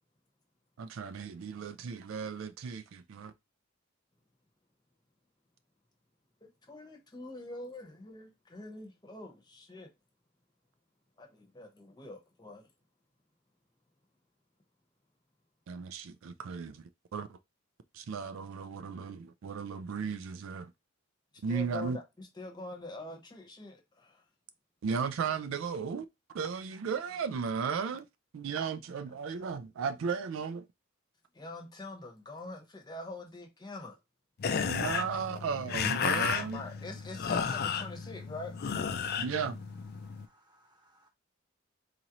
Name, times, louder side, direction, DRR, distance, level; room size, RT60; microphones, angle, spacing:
voice 1, 0.8-3.3 15.7-16.8 17.1-17.4 17.9-20.7 21.4-22.0 24.8-26.1 26.3-28.1 28.3-30.7 34.7-36.6 39.2-39.6, right 6 dB, 70° right, 0.4 m, -35 dB
voice 2, 6.4-9.9 11.2-12.7 21.5-24.2 31.3-33.9 36.2-38.5, left 2 dB, 20° left, 0.8 m, -44 dB
sound 1, 34.4-40.3, left 6 dB, 50° left, 0.4 m, -33 dB
voice 3, 36.4-37.3 37.8-38.4 38.9-39.3 39.9-41.1, right 1 dB, 20° right, 1.0 m, -66 dB
4.1 x 2.5 x 2.9 m
head